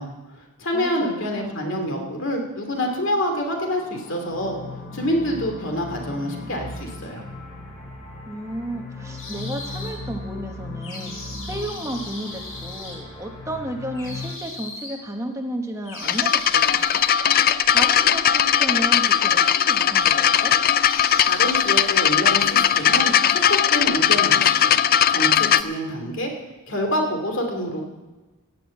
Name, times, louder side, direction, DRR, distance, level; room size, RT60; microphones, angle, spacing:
voice 1, 0.0-4.6 4.9-7.2 21.2-24.8 25.1-26.3 26.7-27.8, equal, 60° left, 2 dB, 2.7 m, -27 dB
voice 2, 1.2-1.6 8.3-17.0 17.3-20.6, right 1 dB, 15° right, 3 dB, 1.1 m, -33 dB
sound 1, 2.7-14.3, left 2 dB, 30° left, 4.5 m, -37 dB
sound 2, 9.2-9.9 10.8-12.9 13.9-15.0 15.8-17.2 18.7-20.5 20.8-21.9 22.1-23.6, left 2 dB, 75° left, 6.5 m, -38 dB
sound 3, 16.0-25.6, left 9 dB, 45° left, 0.4 m, -18 dB
15.5 x 7.8 x 8.4 m, 1.2 s
head